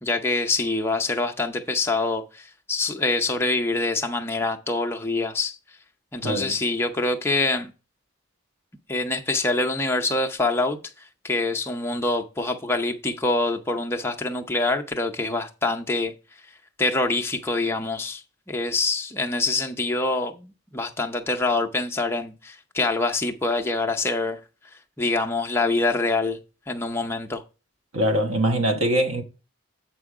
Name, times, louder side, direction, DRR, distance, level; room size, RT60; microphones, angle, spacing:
voice 1, 0.0-5.6 6.1-7.7 8.9-16.1 16.8-24.4 25.0-26.4 26.7-27.4, left 2 dB, 10° left, 0.6 m, -25 dB
voice 2, 6.2-6.5 27.9-29.2, right 1 dB, 90° right, 1.3 m, -22 dB
8.1 x 4.4 x 4.8 m
head